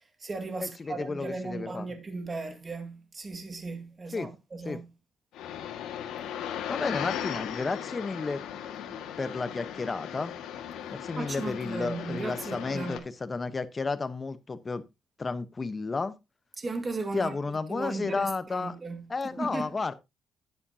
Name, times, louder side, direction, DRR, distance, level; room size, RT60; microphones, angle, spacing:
voice 1, 0.0-4.9 11.2-13.1 16.6-17.3 17.7-19.1 19.3-19.7, right 3 dB, 30° right, 2.0 m, -36 dB
voice 2, 0.9-1.9 4.1-4.3 4.6-4.8 6.7-8.4 9.2-10.3 10.9-14.8 15.2-16.2 17.1-18.7 19.1-19.9, left 4 dB, 30° left, 1.0 m, -32 dB
sound 1, 5.3-13.0, left 9 dB, 85° left, 1.9 m, -37 dB
10.5 x 10.0 x 2.8 m
cardioid pair, 90°, 0 cm